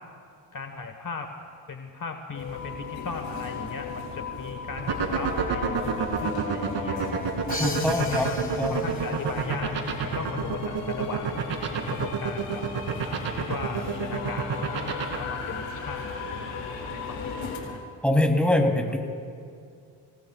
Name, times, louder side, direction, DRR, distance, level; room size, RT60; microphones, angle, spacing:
voice 1, 0.5-1.3 1.7-7.1 7.7-11.4 11.9-12.6 13.1-14.8 15.1-17.8, left 4 dB, 40° left, 5 dB, 1.4 m, -37 dB
sound 1, 2.3-17.6, left 5 dB, 90° left, 3.3 m, -38 dB
sound 2, 4.8-15.2, right 6 dB, 65° right, 2.6 m, -27 dB
Crash cymbal, 7.5-9.3, left 2 dB, 20° left, 1.8 m, -37 dB
voice 2, 7.6-8.3 8.6-8.8 18.0-19.0, left 1 dB, ahead, 2 dB, 2.7 m, -23 dB
30.0 x 18.5 x 2.4 m, 2.3 s
supercardioid pair, 65°, 47 cm